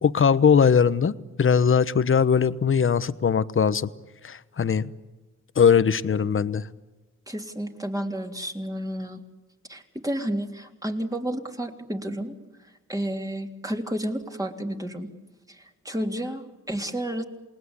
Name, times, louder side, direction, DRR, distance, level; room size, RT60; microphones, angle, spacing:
voice 1, 0.0-1.1 1.4-3.9 4.2-4.9 5.6-6.6, left 6 dB, 45° left, 14 dB, 1.2 m, -20 dB
voice 2, 7.3-9.2 9.7-12.4 12.9-15.1 15.5-17.2, right 1 dB, 10° right, 3 dB, 3.4 m, -31 dB
28.5 x 20.0 x 9.8 m, 1.1 s
cardioid pair, 90°, 29 cm